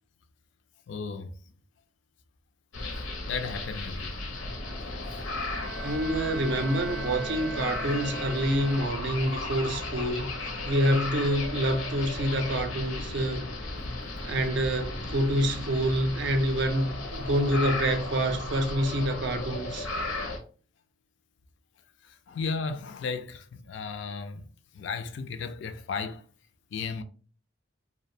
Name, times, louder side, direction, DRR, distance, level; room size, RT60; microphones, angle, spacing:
voice 1, 0.9-1.3 3.3-4.1 5.1-5.2 22.0-24.4 24.7-26.2 26.7-27.0, left 5 dB, 60° left, 0.3 m, -34 dB
sound 1, 2.7-20.4, left 2 dB, 90° left, 0.7 m, -35 dB
Bowed string instrument, 5.4-9.3, right 3 dB, 5° right, 0.4 m, -40 dB
voice 2, 5.8-13.4 14.2-19.9, right 1 dB, 60° right, 0.4 m, -27 dB
2.5 x 2.1 x 2.6 m
head